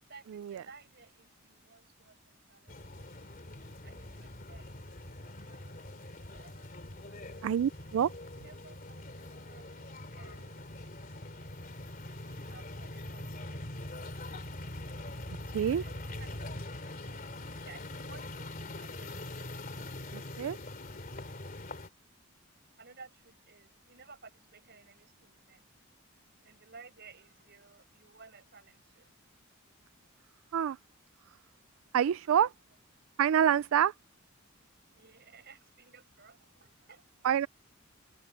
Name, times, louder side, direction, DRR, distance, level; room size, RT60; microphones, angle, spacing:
voice 1, 0.0-3.4 3.8-9.0 9.3-10.7 11.1-11.6 12.0-13.8 15.6-19.4 22.8-25.7 26.4-29.2 34.7-37.3, right 4 dB, 50° right, 5.9 m, -57 dB
sound 1, 2.7-21.9, left 1 dB, 45° left, 2.8 m, -43 dB
voice 2, 7.4-8.1 15.5-15.8 20.4-20.6 30.5-30.8 31.9-32.5 33.2-33.9 37.2-37.5, right 9 dB, 75° right, 0.3 m, -26 dB
head